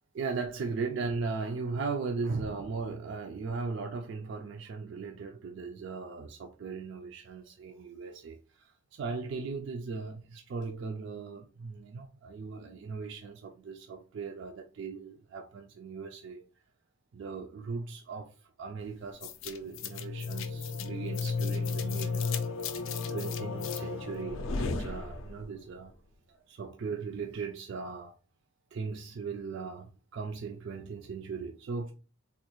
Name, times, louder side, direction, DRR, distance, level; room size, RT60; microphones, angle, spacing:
voice 1, 0.1-16.5 17.1-22.5 23.1-25.9 26.3-28.2 28.7-31.9, right 4 dB, 55° right, 0.3 m, -38 dB
sound 1, 19.2-25.6, left 4 dB, 65° left, 0.4 m, -34 dB
3.6 x 2.3 x 2.9 m
head